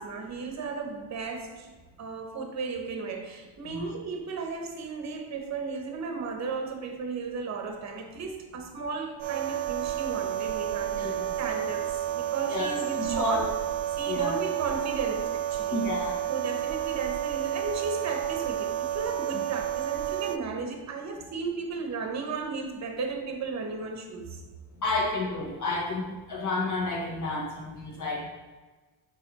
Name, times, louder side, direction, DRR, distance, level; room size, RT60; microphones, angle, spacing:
voice 1, 0.0-1.7 2.0-13.4 14.0-15.9 16.3-24.4, right 4 dB, 35° right, 3 dB, 1.0 m, -35 dB
sound 1, 9.2-20.4, right 11 dB, 80° right, 0.5 m, -31 dB
voice 2, 10.9-11.3 12.5-13.4 14.1-14.3 15.7-16.2 19.3-19.4 24.8-28.3, left 2 dB, 40° left, -3 dB, 1.6 m, -31 dB
6.9 x 4.6 x 4.0 m, 1.3 s
cardioid pair, 175°, 47 cm